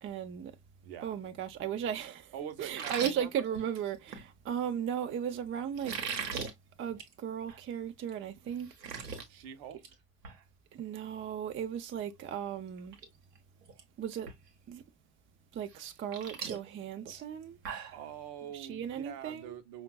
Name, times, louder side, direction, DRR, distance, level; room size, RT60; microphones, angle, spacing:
voice 1, 0.0-0.6 1.0-6.0 6.8-8.7 10.7-13.0 14.0-14.3 14.7-14.8 15.5-17.6 18.5-19.6, right 9 dB, 25° right, 0.5 m, -36 dB
voice 2, 0.8-1.2 2.3-3.5 9.3-9.8 17.9-19.8, right 9 dB, 55° right, 0.8 m, -44 dB
sound 1, 2.7-4.2 5.7-6.5 6.9-7.1 7.5-7.6 8.1-8.2 8.5-9.2 9.6-9.9 10.2-10.4 12.2-12.3 12.8-13.1 13.3-13.8 14.3-14.4 15.7-18.0, right 6 dB, 85° right, 1.0 m, -39 dB
5.1 x 2.3 x 2.2 m
hypercardioid pair, 65°, 47 cm